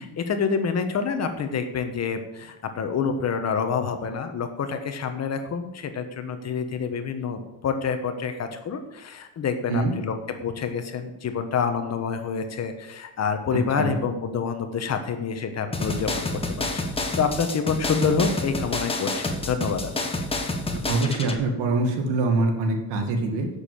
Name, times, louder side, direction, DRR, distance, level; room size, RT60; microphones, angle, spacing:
voice 1, 0.2-10.1 10.4-16.1 16.5-16.9 17.2-19.9, left 6 dB, 35° left, 7 dB, 1.2 m, -27 dB
voice 2, 13.5-14.0 20.9-23.5, right 3 dB, 65° right, 3 dB, 2.2 m, -24 dB
sound 1, 15.7-21.4, left 2 dB, 15° left, 1.3 m, -29 dB
8.1 x 6.7 x 7.6 m, 0.95 s
cardioid pair, 115°, 43 cm